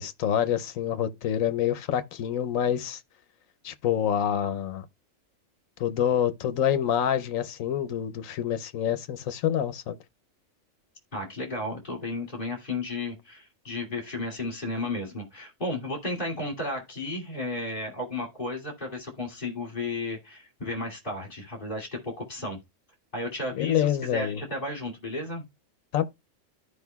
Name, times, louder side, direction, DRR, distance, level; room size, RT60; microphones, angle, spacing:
voice 1, 0.0-3.0 3.6-4.8 5.8-10.0 23.5-24.4 25.9-26.0, left 10 dB, 85° left, 1.1 m, -27 dB
voice 2, 11.1-22.6 23.1-25.4, left 2 dB, 40° left, 2.8 m, -33 dB
14.0 x 5.0 x 2.3 m
omnidirectional pair, 1.4 m